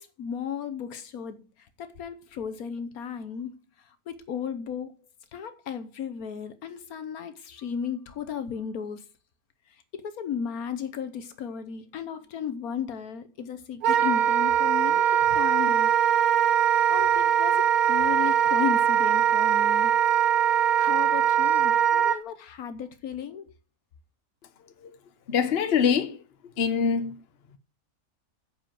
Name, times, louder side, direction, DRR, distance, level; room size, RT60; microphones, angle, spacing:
voice 1, 0.0-5.0 5.3-9.1 9.7-16.0 16.9-20.0 20.8-23.5, left 7 dB, 75° left, 1.4 m, -35 dB
Wind instrument woodwind instrument, 13.8-22.2, right 9 dB, 80° right, 1.2 m, -22 dB
voice 2, 25.3-26.2 26.6-27.2, left 7 dB, 45° left, 1.1 m, -24 dB
9.4 x 5.0 x 7.6 m
omnidirectional pair, 1.6 m